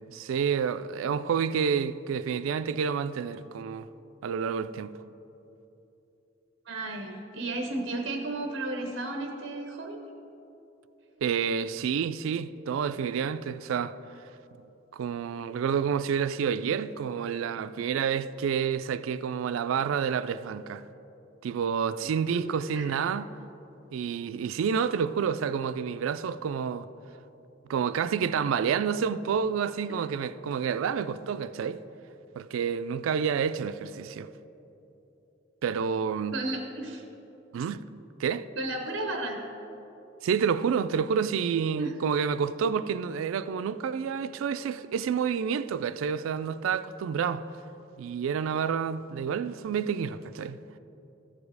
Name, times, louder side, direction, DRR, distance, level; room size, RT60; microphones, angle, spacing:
voice 1, 0.1-3.9 4.2-5.0 11.2-14.0 14.9-20.8 21.4-23.3 23.9-26.9 27.7-31.8 32.4-34.3 35.6-36.4 37.5-37.9 38.2-38.5 40.2-47.4 48.0-50.6, right 7 dB, 90° right, 0.3 m, -29 dB
voice 2, 6.7-10.0 22.3-22.4 22.7-22.9 36.3-37.0 38.6-39.4 41.8-41.9, right 2 dB, 60° right, 0.8 m, -33 dB
14.0 x 5.1 x 4.8 m
head